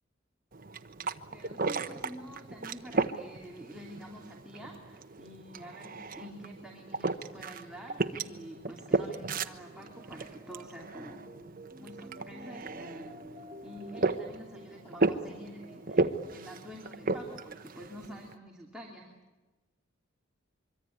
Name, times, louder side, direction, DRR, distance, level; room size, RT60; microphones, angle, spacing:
sound 1, 0.5-18.3, right 3 dB, 45° right, 1.1 m, -35 dB
voice 1, 1.3-11.2 11.8-13.4 13.6-19.1, equal, 5° right, -2 dB, 3.0 m, -48 dB
sound 2, 8.9-17.5, right 1 dB, 30° right, 2.6 m, -51 dB
25.0 x 24.0 x 9.5 m, 1.2 s
head